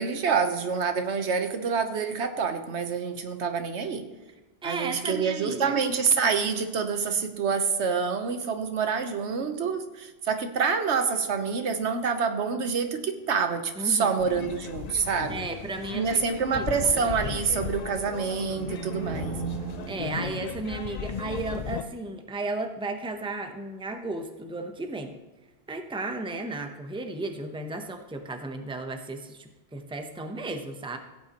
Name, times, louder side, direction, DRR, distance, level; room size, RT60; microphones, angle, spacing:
voice 1, 0.0-4.0 4.6-15.4 15.9-19.4, right 5 dB, 90° right, 7 dB, 1.2 m, -27 dB
voice 2, 4.6-5.8 13.8-14.2 15.3-16.7 16.9-17.4 19.9-25.1 25.7-31.0, right 2 dB, 5° right, 5 dB, 0.7 m, -34 dB
sound 1, 14.2-21.8, left 7 dB, 55° left, 0.5 m, -36 dB
sound 2, 18.4-21.4, right 8 dB, 55° right, 0.9 m, -38 dB
16.0 x 8.7 x 3.0 m, 1.2 s
omnidirectional pair, 1.1 m